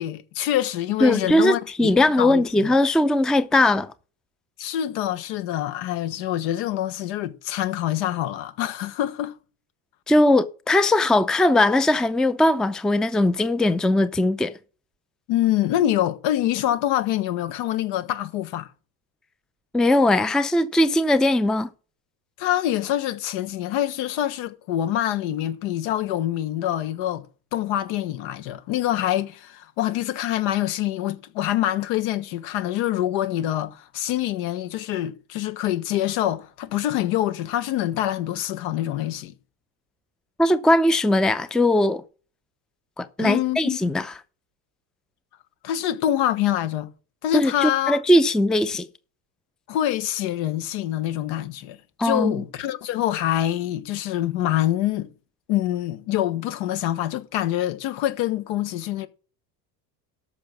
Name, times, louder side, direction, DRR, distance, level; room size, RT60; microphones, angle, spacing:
voice 1, 0.0-1.9 2.2-2.7 4.6-9.3 15.3-18.7 22.4-27.3 27.5-39.3 43.2-43.8 45.6-46.9 47.2-48.0 49.7-55.1 55.5-59.1, left 12 dB, 65° left, 1.4 m, -25 dB
voice 2, 1.0-3.9 10.1-14.5 19.7-21.7 40.4-42.0 43.0-44.1 47.3-48.9 52.0-52.4, left 1 dB, ahead, 0.5 m, -20 dB
13.0 x 5.9 x 6.0 m
hypercardioid pair, 85°, 49 cm